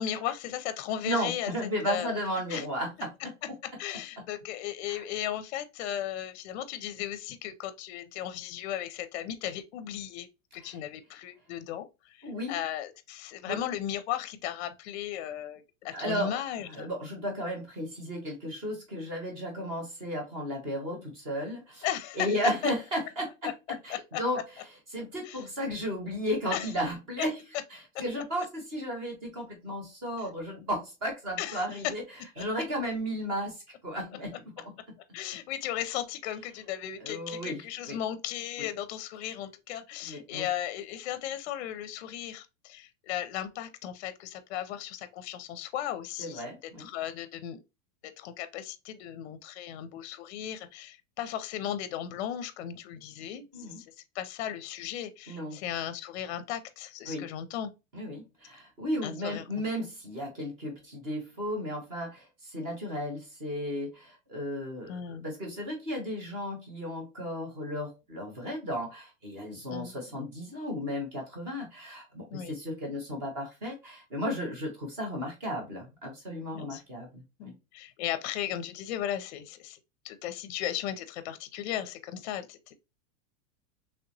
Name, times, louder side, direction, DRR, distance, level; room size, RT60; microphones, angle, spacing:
voice 1, 0.0-1.5 1.9-2.2 2.5-2.6 3.6-10.3 10.5-16.9 21.8-22.7 23.4-23.5 23.9-24.2 25.2-25.4 26.5-26.7 27.9-28.0 31.4-31.6 32.4-32.5 35.1-47.6 48.0-53.9 54.1-57.7 59.0-59.4 64.9-65.3 69.7-69.9 72.3-72.6 76.5-76.8 77.4-79.8 80.0-82.7, left 11 dB, 55° left, 0.5 m, -36 dB
voice 2, 1.0-3.3 4.9-5.0 10.6-10.8 12.2-12.6 13.5-13.6 15.9-16.4 16.7-21.9 22.2-23.5 23.8-24.4 24.9-27.4 27.7-32.0 32.4-34.6 37.0-38.0 40.0-40.5 46.2-46.9 53.5-53.8 55.3-55.6 57.1-57.3 57.9-65.0 65.2-77.5, equal, 15° right, 0.3 m, -34 dB
3.1 x 2.9 x 2.6 m
supercardioid pair, 170°, 41 cm